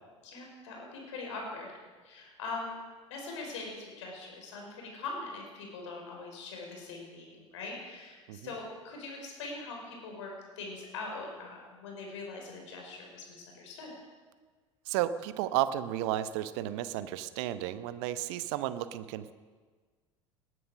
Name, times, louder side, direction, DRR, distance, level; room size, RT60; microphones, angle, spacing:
voice 1, 0.2-1.7 2.0-2.7 3.1-13.9, left 3 dB, 70° left, 0 dB, 5.5 m, -42 dB
voice 2, 14.9-19.3, right 13 dB, 60° right, 13 dB, 0.9 m, -33 dB
19.5 x 11.0 x 6.4 m, 1.4 s
figure-of-eight pair, 70°, 16 cm